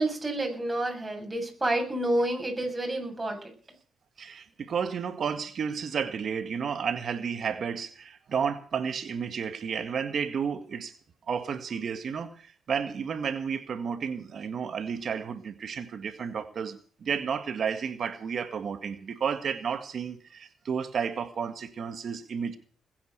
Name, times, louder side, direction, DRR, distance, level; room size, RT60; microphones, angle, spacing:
voice 1, 0.0-3.4, right 1 dB, 15° right, 2 dB, 7.7 m, -29 dB
voice 2, 4.2-10.9 11.3-22.6, right 6 dB, 55° right, 8 dB, 1.8 m, -32 dB
21.0 x 9.6 x 6.8 m, 0.42 s
cardioid pair, 90°, 0 cm